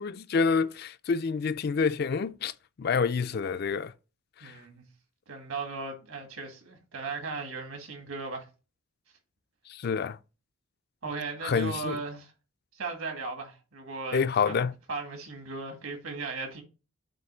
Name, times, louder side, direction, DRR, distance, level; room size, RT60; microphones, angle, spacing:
voice 1, 0.0-2.5 2.8-3.9 4.4-4.6 9.7-10.2 11.4-12.0 14.1-14.7, left 5 dB, 45° left, 0.3 m, -28 dB
voice 2, 4.4-4.8 5.3-8.5 11.0-12.3 12.8-14.2 14.5-14.6 14.9-16.6, right 3 dB, 75° right, 1.9 m, -37 dB
7.6 x 3.1 x 6.0 m
head